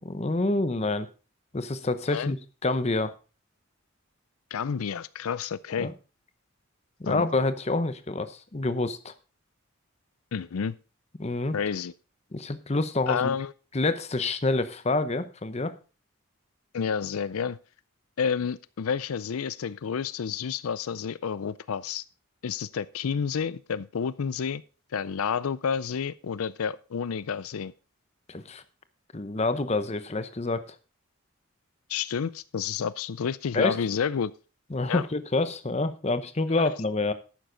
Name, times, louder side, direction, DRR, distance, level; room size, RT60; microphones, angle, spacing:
voice 1, 0.0-1.1 1.5-2.4 2.6-3.1 5.8-5.9 7.0-9.1 11.2-11.5 12.3-13.3 13.7-15.7 28.3-28.6 29.1-30.7 33.5-33.7 34.7-37.1, left 2 dB, 30° left, 0.8 m, -27 dB
voice 2, 4.5-5.9 7.1-7.2 10.3-10.7 11.5-11.9 13.1-13.5 16.7-17.6 18.2-22.0 22.4-24.6 24.9-27.7 31.9-34.3 34.9-35.0 36.5-36.7, left 6 dB, 90° left, 0.5 m, -30 dB
11.5 x 9.1 x 3.9 m
head